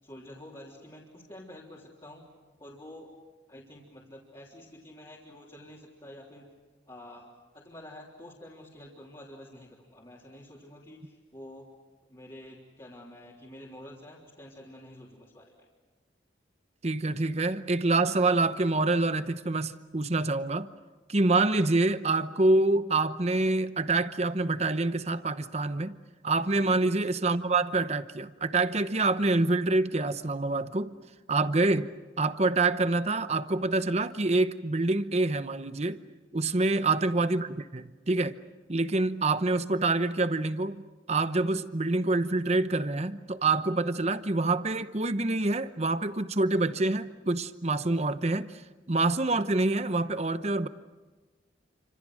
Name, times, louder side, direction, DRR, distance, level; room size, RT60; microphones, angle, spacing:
voice 1, 0.0-2.3 2.6-3.2 3.5-6.5 6.9-11.7 12.0-15.7 17.1-17.3 26.5-26.8 36.5-36.9, left 1 dB, 25° left, 3.5 m, -49 dB
voice 2, 16.8-20.7 21.1-26.0 26.2-30.9 31.3-31.9 32.2-36.0 36.3-38.4 38.7-40.8 41.1-48.6 48.9-50.7, right 2 dB, 35° right, 0.9 m, -26 dB
29.5 x 26.0 x 6.4 m
head